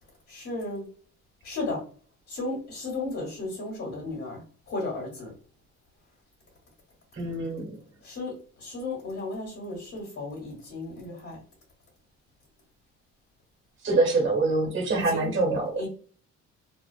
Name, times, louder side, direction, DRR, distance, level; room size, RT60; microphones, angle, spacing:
voice 1, 0.3-0.8 1.4-1.8 2.3-5.3 8.0-11.4 14.9-15.3 15.7-15.9, left 2 dB, 55° left, -2 dB, 1.2 m, -34 dB
voice 2, 7.2-7.7 13.8-15.7, right 2 dB, 40° right, 0 dB, 1.1 m, -25 dB
2.4 x 2.4 x 2.3 m, 0.42 s
cardioid pair, 90°, 30 cm